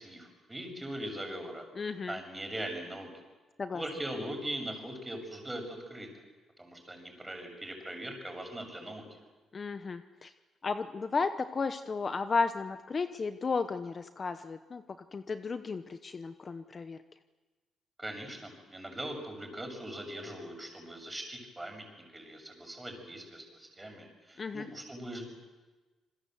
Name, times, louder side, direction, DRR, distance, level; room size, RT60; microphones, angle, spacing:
voice 1, 0.0-1.6 2.1-3.1 3.7-6.1 6.6-9.2 18.0-25.3, right 1 dB, 15° right, 4 dB, 6.9 m, -41 dB
voice 2, 1.8-2.2 3.6-3.8 9.5-10.3 10.6-14.8 15.1-17.0 24.4-24.7, left 4 dB, 35° left, 10 dB, 1.0 m, -34 dB
27.5 x 21.0 x 7.9 m, 1.3 s
cardioid pair, 90°, 0 cm